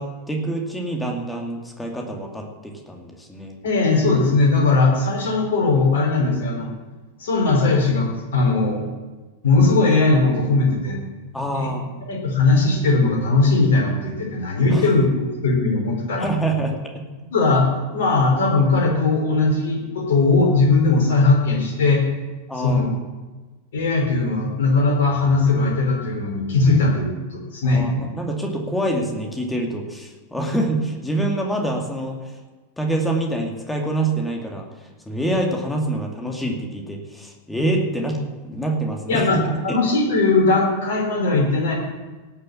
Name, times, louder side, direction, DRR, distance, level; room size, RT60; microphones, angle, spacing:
voice 1, 0.0-3.6 11.3-12.0 14.7-14.9 16.2-16.8 22.5-22.9 27.7-32.3 32.8-39.4 39.7-39.8, right 1 dB, 5° left, 1 dB, 2.4 m, -26 dB
voice 2, 3.6-6.7 7.2-8.9 9.4-11.0 11.6-11.7 12.1-16.3 17.3-22.0 22.6-22.9 23.7-28.1 39.1-41.7, left 3 dB, 60° left, 0 dB, 4.6 m, -19 dB
18.0 x 6.7 x 7.2 m, 1.2 s
figure-of-eight pair, 90°, 0 cm